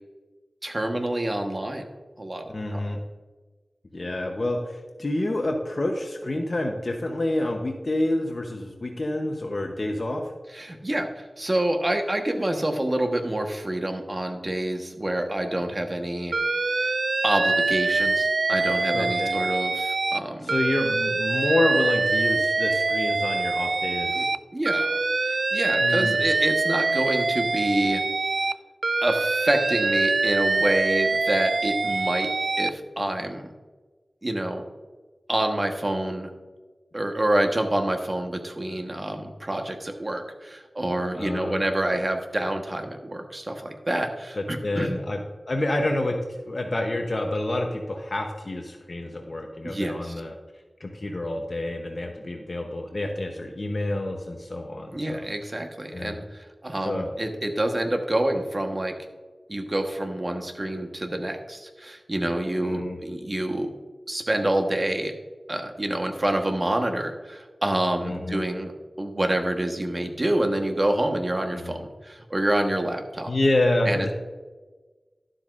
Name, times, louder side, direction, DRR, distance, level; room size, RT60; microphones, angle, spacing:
voice 1, 0.6-1.9 2.2-2.4 2.7-2.8 10.5-16.4 16.8-16.9 17.2-20.5 24.1-24.3 24.5-28.0 29.0-32.3 32.6-33.5 34.2-34.6 35.3-36.3 36.9-45.0 49.6-50.2 54.9-58.9 59.5-63.7 64.1-65.1 65.5-68.7 69.0-73.3 73.8-74.1, right 1 dB, 35° right, 4 dB, 1.2 m, -27 dB
voice 2, 2.5-3.0 3.9-4.6 5.0-10.2 18.9-19.3 20.4-24.3 25.8-26.2 41.2-41.6 44.4-45.2 45.5-46.2 46.4-50.3 50.8-55.3 55.9-56.2 56.8-57.1 62.6-63.0 68.1-68.4 71.6-71.8 73.3-74.1, left 1 dB, 50° left, 2 dB, 0.9 m, -28 dB
Alarm, 16.3-20.2 20.5-24.4 24.6-28.5 28.8-32.7, right 3 dB, 65° right, 0.3 m, -24 dB
12.0 x 7.7 x 2.5 m, 1.3 s
wide cardioid pair, 75°, 0 cm